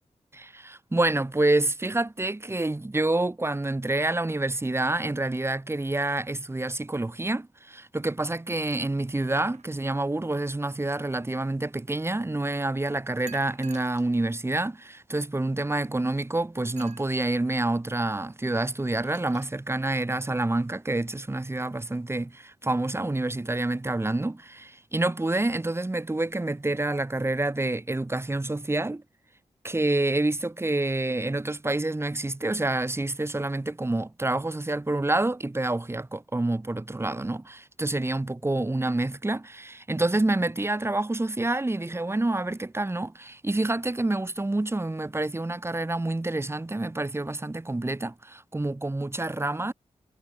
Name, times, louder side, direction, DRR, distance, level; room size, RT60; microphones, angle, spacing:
voice 1, 0.3-29.0 29.6-49.7, right 2 dB, 20° right, 5.5 m, -28 dB
sound 1, 9.0-10.1 13.3-14.1 14.8-14.9 16.8-17.1 18.8-19.5, right 6 dB, 70° right, 6.0 m, -49 dB
wide cardioid pair, 85°, 12 cm